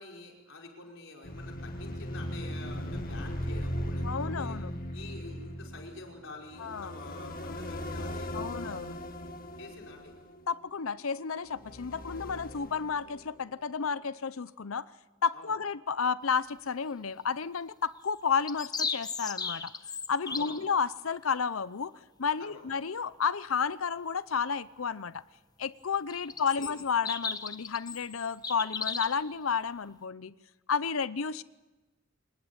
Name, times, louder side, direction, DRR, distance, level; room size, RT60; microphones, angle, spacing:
voice 1, 0.0-4.6 4.9-8.6 9.6-10.1 15.3-15.6 20.2-20.6 22.4-22.7 26.3-26.8, left 3 dB, 70° left, 0 dB, 5.2 m, -48 dB
sound 1, 1.2-10.8 11.5-13.5, equal, 45° left, 2.0 m, -38 dB
voice 2, 4.0-4.7 6.6-6.9 8.3-9.0 10.5-14.8 15.2-19.7 20.1-21.9 22.2-25.2 25.6-30.3 30.7-31.4, left 6 dB, 90° left, 16 dB, 0.7 m, -31 dB
sound 2, 18.0-20.6 26.1-29.2, left 5 dB, 20° left, 1.0 m, -36 dB
25.5 x 20.5 x 8.7 m, 1.1 s
head